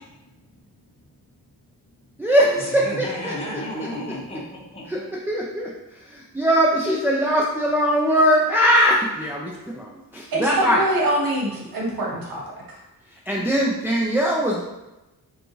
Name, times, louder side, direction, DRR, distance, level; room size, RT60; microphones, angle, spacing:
voice 1, 2.2-3.9 4.9-10.8 13.1-14.6, equal, 5° right, -4 dB, 0.4 m, -21 dB
voice 2, 2.8-5.0, equal, 15° left, -4 dB, 0.9 m, -32 dB
voice 3, 10.3-12.4 12.7-12.8, right 1 dB, 70° right, -2 dB, 1.1 m, -24 dB
5.0 x 2.4 x 3.1 m, 1.0 s
cardioid pair, 115°, 36 cm